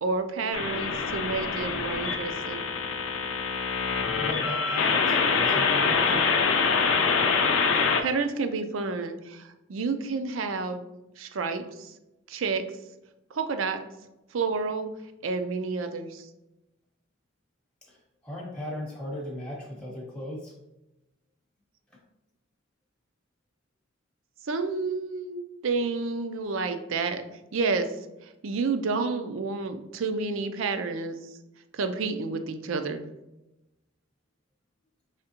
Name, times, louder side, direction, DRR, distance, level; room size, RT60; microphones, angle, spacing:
voice 1, 0.0-2.7 7.7-10.8 11.2-11.9 12.3-12.7 13.3-13.8 14.3-14.9 15.2-16.3 24.4-27.2 27.5-27.9 28.2-31.4 31.7-33.1, right 4 dB, 70° right, 8 dB, 0.5 m, -30 dB
sound 1, 0.5-8.0, left 5 dB, 70° left, 0.5 m, -25 dB
voice 2, 4.1-6.2 17.9-18.0 18.2-20.5 21.9-22.0, left 1 dB, 5° left, -4 dB, 0.9 m, -37 dB
4.9 x 3.3 x 2.9 m, 0.95 s
head